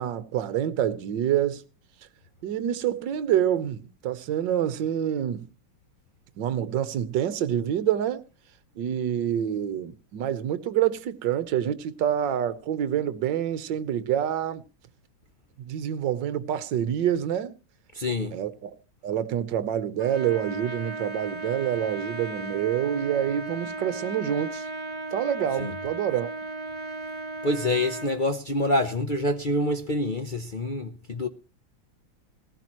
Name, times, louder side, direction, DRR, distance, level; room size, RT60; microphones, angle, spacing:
voice 1, 0.0-1.6 2.4-5.5 6.4-8.2 8.8-14.6 15.6-17.5 18.3-18.7 19.0-24.7 25.1-26.3, right 10 dB, 65° right, 1.5 m, -27 dB
voice 2, 17.9-18.3 25.6-25.8 27.4-31.3, left 1 dB, 60° left, 0.5 m, -26 dB
Trumpet, 20.0-28.2, right 2 dB, 20° right, 1.7 m, -36 dB
19.0 x 15.0 x 3.0 m
omnidirectional pair, 2.2 m